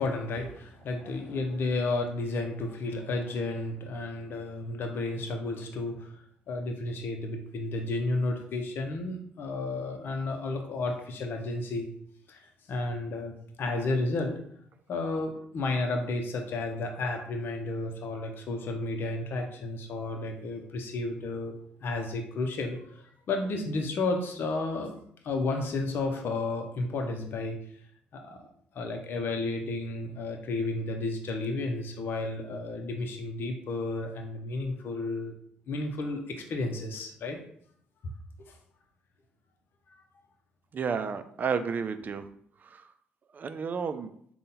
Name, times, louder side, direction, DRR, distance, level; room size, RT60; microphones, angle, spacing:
voice 1, 0.0-11.9 12.3-14.4 14.9-21.5 21.8-24.9 25.2-27.6 28.1-28.5 28.7-35.3 35.7-37.4 38.0-38.1 38.4-38.6, left 2 dB, 60° left, 3 dB, 0.7 m, -32 dB
voice 2, 40.7-42.2 42.6-42.8 43.3-44.1, right 6 dB, 45° right, 10 dB, 0.4 m, -31 dB
3.7 x 2.3 x 4.1 m, 0.65 s
supercardioid pair, 65°, 4 cm